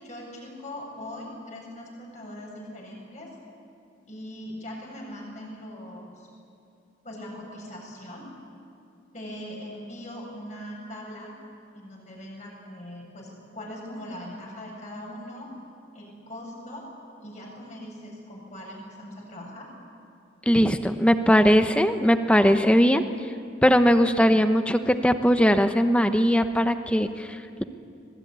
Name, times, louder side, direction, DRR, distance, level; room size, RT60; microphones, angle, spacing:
voice 1, 0.0-3.4 4.1-6.3 7.0-8.3 9.1-11.4 11.7-15.5 15.9-16.9 17.2-19.7, left 1 dB, 40° left, -1 dB, 7.3 m, -40 dB
voice 2, 20.5-23.0 23.6-27.6, equal, 5° left, 8 dB, 0.9 m, -20 dB
25.5 x 20.5 x 9.7 m, 2.4 s
head